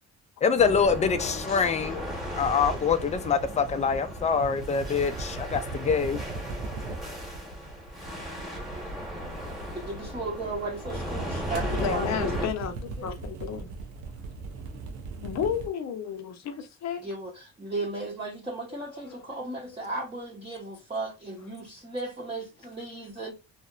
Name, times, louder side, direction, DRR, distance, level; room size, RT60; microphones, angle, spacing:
voice 1, 0.4-2.0 2.4-6.2, left 6 dB, 25° left, 0.3 m, -25 dB
sound 1, 0.6-12.5, equal, ahead, 1.1 m, -36 dB
voice 2, 1.1-1.4 1.9-2.1 11.8-13.7 15.2-17.0 18.7-19.8, left 7 dB, 65° left, 0.6 m, -33 dB
sound 2, 2.3-10.4 11.1-15.7, right 3 dB, 90° right, 0.6 m, -39 dB
voice 3, 9.7-12.4 17.0-23.3, right 2 dB, 20° right, 0.8 m, -35 dB
2.7 x 2.0 x 2.3 m
cardioid pair, 90°, 30 cm